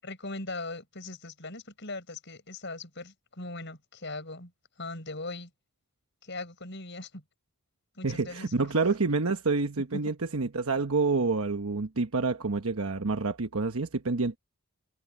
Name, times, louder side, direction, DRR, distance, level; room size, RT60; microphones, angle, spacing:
voice 1, 0.0-4.5 4.8-5.5 6.2-7.2 8.0-8.7 9.9-10.1, left 2 dB, 55° left, 7.6 m, -40 dB
voice 2, 8.0-14.4, right 3 dB, 80° right, 1.1 m, -28 dB
head